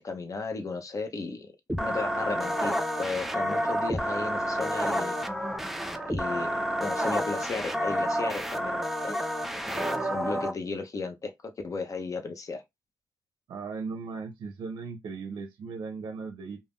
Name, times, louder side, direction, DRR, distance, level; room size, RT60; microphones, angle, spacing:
voice 1, 0.0-1.5 1.8-5.2 6.1-9.3 9.7-12.6, left 4 dB, 40° left, 0.7 m, -35 dB
sound 1, 1.7-10.5, equal, 5° right, 0.4 m, -29 dB
voice 2, 13.5-16.6, right 4 dB, 65° right, 0.5 m, -37 dB
2.5 x 2.0 x 3.5 m
cardioid pair, 75°, 8 cm